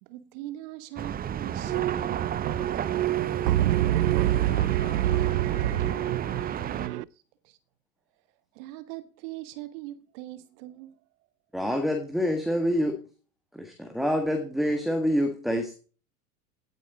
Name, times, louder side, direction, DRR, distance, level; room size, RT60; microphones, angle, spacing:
voice 1, 0.0-2.4 7.1-7.6 8.5-11.0, right 15 dB, 55° right, 1.3 m, -41 dB
sound 1, 1.0-6.9, right 9 dB, 20° right, 0.6 m, -32 dB
sound 2, 1.6-7.0, right 14 dB, 80° right, 0.5 m, -26 dB
voice 2, 3.2-6.2, left 3 dB, 15° left, 4.0 m, -45 dB
voice 3, 11.5-13.0 13.5-15.8, equal, ahead, 1.6 m, -26 dB
16.5 x 9.0 x 3.9 m
hypercardioid pair, 85°, 47 cm